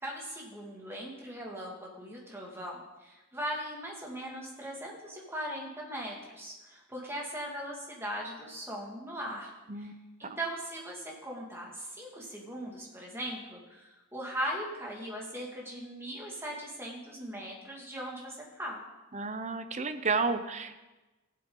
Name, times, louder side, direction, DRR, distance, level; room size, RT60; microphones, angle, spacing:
voice 1, 0.0-9.9 10.2-18.8, equal, 10° right, -2 dB, 2.2 m, -39 dB
voice 2, 19.1-20.8, right 4 dB, 35° right, 9 dB, 0.7 m, -31 dB
17.5 x 7.7 x 3.9 m, 1.1 s
head